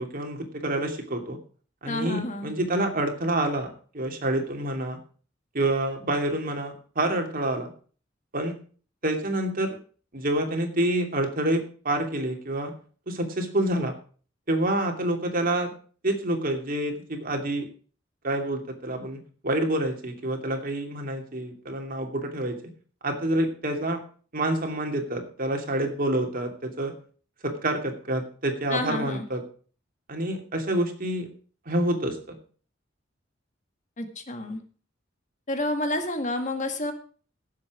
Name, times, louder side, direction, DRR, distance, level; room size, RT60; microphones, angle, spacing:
voice 1, 0.0-1.4 1.8-5.0 5.5-7.7 8.3-8.5 9.0-9.7 10.1-12.7 13.1-13.9 14.5-15.7 16.0-17.7 18.2-22.6 23.0-24.0 24.3-26.9 27.4-29.4 30.1-31.3 31.7-32.4, right 1 dB, 50° right, 3 dB, 2.8 m, -27 dB
voice 2, 1.9-2.5 28.7-29.2 34.0-34.6 35.5-36.9, left 1 dB, 40° left, 6 dB, 1.9 m, -29 dB
17.0 x 7.6 x 5.0 m, 0.42 s
head